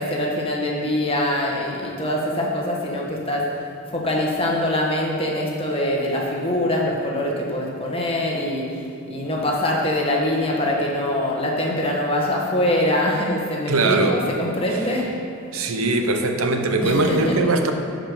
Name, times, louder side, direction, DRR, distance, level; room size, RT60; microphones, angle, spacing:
voice 1, 0.0-3.5 3.9-8.7 9.1-15.1 16.8-17.4, left 1 dB, 25° left, -2 dB, 1.4 m, -23 dB
voice 2, 13.7-14.2 15.5-17.7, right 2 dB, 85° right, 5 dB, 0.9 m, -20 dB
11.0 x 5.2 x 6.8 m, 2.7 s
head